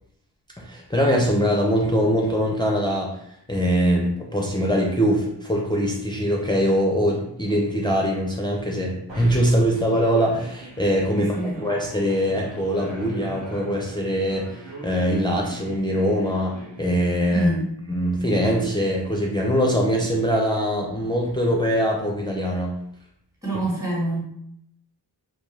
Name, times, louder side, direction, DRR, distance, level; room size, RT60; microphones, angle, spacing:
voice 1, 0.6-3.2 3.5-17.5 17.9-22.7, equal, 10° left, -2 dB, 0.4 m, -22 dB
sound 1, 9.1-17.4, right 2 dB, 80° right, 0.8 m, -41 dB
voice 2, 11.1-11.6 17.3-17.7 23.4-24.2, right 1 dB, 5° right, -5 dB, 1.2 m, -25 dB
2.2 x 2.2 x 3.1 m, 0.73 s
cardioid pair, 45°, 43 cm